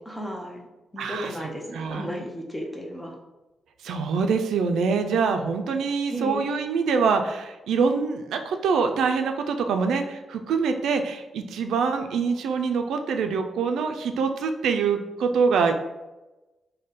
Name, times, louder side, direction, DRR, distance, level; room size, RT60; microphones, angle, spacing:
voice 1, 0.1-0.6 0.9-3.2 6.1-6.5, equal, 5° left, 0 dB, 0.5 m, -34 dB
voice 2, 1.0-1.3 1.7-2.0 3.8-15.7, right 5 dB, 85° right, 6 dB, 0.3 m, -24 dB
3.5 x 2.1 x 4.0 m, 1.1 s
wide cardioid pair, 155°, 0 cm